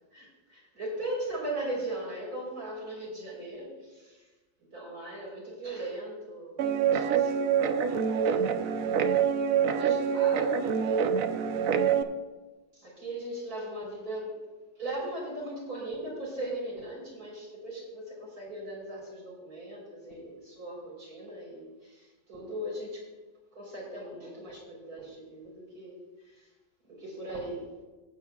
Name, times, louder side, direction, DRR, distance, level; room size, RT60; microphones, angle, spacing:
voice 1, 0.1-4.3 4.7-7.5 8.1-8.7 9.5-11.3 12.7-14.3 14.8-23.1 23.5-26.0 26.2-26.5 26.9-27.7, right 1 dB, 55° right, -4 dB, 4.3 m, -39 dB
Guitar, 6.6-12.0, right 7 dB, 70° right, 0.8 m, -26 dB
18.5 x 8.0 x 2.3 m, 1.2 s
omnidirectional pair, 2.0 m